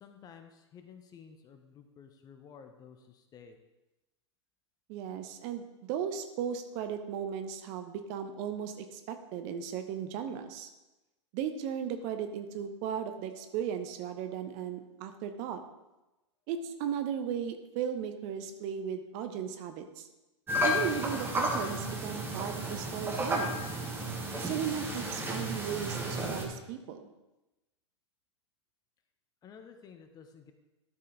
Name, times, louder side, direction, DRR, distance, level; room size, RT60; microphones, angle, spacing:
voice 1, 0.0-3.6 29.4-30.5, left 7 dB, 25° left, 7 dB, 0.9 m, -53 dB
voice 2, 4.9-10.7 11.3-15.6 16.5-20.1 20.6-23.6 24.4-27.1, right 8 dB, 40° right, 7 dB, 0.9 m, -36 dB
sound 1, 20.5-26.5, equal, 15° right, 1.6 m, -32 dB
12.5 x 5.4 x 4.0 m, 1.0 s
figure-of-eight pair, 100°, 16 cm